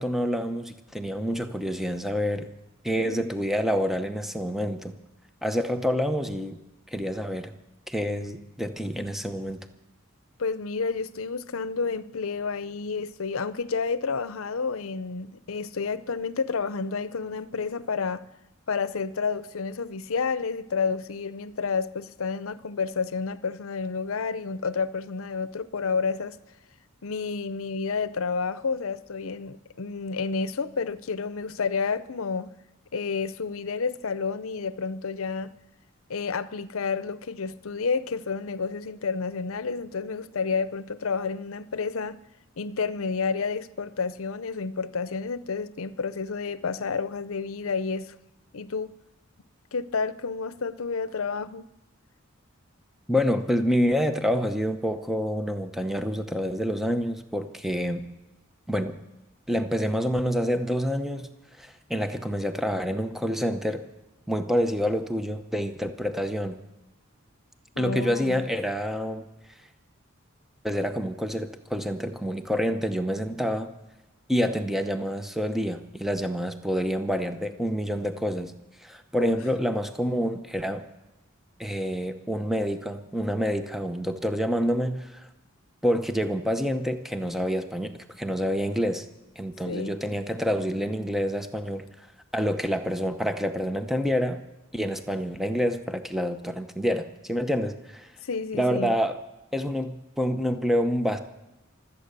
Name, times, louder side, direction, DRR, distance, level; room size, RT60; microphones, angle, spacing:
voice 1, 0.0-2.5 2.8-4.9 5.4-6.6 6.9-7.5 7.9-9.6 53.1-58.0 58.7-59.0 59.5-61.3 61.6-63.8 64.3-66.6 67.8-69.2 70.6-73.7 74.3-78.5 78.8-80.8 81.6-85.3 85.8-89.1 89.4-91.9 92.3-94.4 94.7-98.1 98.5-99.2 99.5-101.2, equal, ahead, 0.8 m, -27 dB
voice 2, 2.9-3.2 10.4-18.2 18.7-26.4 27.0-32.5 32.9-35.5 36.1-42.2 42.6-48.2 48.5-48.9 49.7-51.7 67.8-68.4 79.2-79.4 89.7-90.0 98.2-98.9, left 5 dB, 75° left, 0.7 m, -30 dB
25.0 x 8.4 x 6.8 m
head